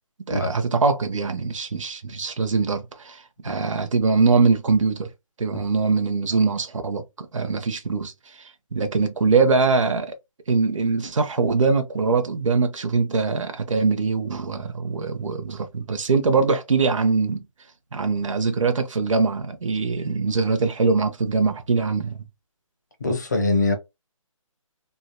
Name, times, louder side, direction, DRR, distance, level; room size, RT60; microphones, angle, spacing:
voice 1, 0.3-5.1 5.4-10.1 10.5-17.4 17.9-22.3, right 4 dB, 65° right, 0.8 m, -22 dB
voice 2, 23.0-23.7, left 2 dB, 30° left, 0.8 m, -22 dB
3.2 x 2.8 x 2.2 m
hypercardioid pair, 180°, 18 cm